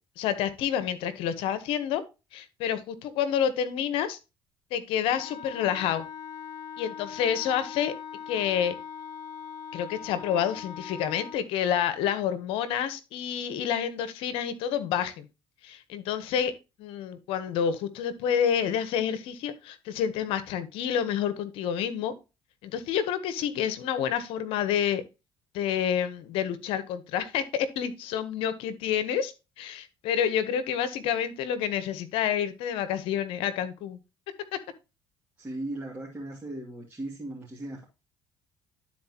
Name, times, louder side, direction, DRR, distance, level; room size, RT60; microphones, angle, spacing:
voice 1, 0.2-2.0 2.3-4.2 4.7-6.0 6.8-7.9 8.3-8.7 9.7-15.3 15.6-16.5 16.8-22.1 22.6-25.0 25.5-34.0 34.5-34.6, left 9 dB, 75° left, 1.0 m, -28 dB
Wind instrument woodwind instrument, 5.1-11.4, left 7 dB, 50° left, 1.6 m, -41 dB
voice 2, 35.4-37.8, right 1 dB, 15° right, 2.3 m, -37 dB
11.5 x 4.3 x 2.9 m
supercardioid pair, 80°, 9 cm